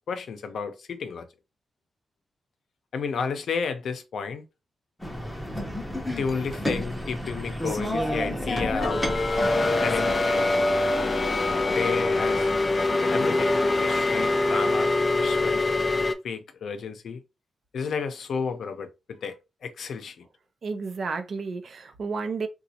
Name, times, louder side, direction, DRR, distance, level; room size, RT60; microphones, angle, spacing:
voice 1, 0.1-1.3 2.9-4.4 6.2-9.0 9.8-10.7 11.7-12.5 13.1-13.5 13.7-14.9 15.2-15.8 16.2-17.2 17.7-19.4 19.6-20.2, left 5 dB, 70° left, 0.6 m, -32 dB
sound 1, 5.0-10.2, equal, 5° left, 0.7 m, -31 dB
sound 2, 8.8-16.1, left 2 dB, 25° left, 0.3 m, -24 dB
voice 2, 20.6-22.5, right 4 dB, 50° right, 0.6 m, -31 dB
3.9 x 2.3 x 2.8 m
wide cardioid pair, 155°, 0 cm